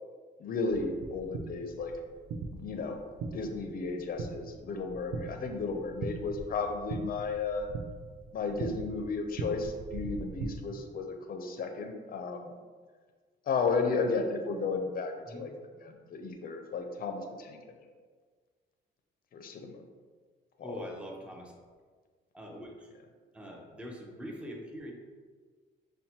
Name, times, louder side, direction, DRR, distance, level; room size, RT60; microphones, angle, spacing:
voice 1, 0.4-2.0 2.5-3.0 3.3-7.7 8.3-12.5 13.5-15.5 15.9-17.6 19.3-19.8 20.6-20.8, left 4 dB, 50° left, 5 dB, 0.5 m, -33 dB
sound 1, 0.7-10.5, right 3 dB, 55° right, 0.5 m, -41 dB
voice 2, 20.6-21.5 22.3-22.9 23.3-24.9, equal, 5° right, 0 dB, 0.6 m, -43 dB
5.5 x 2.2 x 2.7 m, 1.5 s
cardioid pair, 90°, 20 cm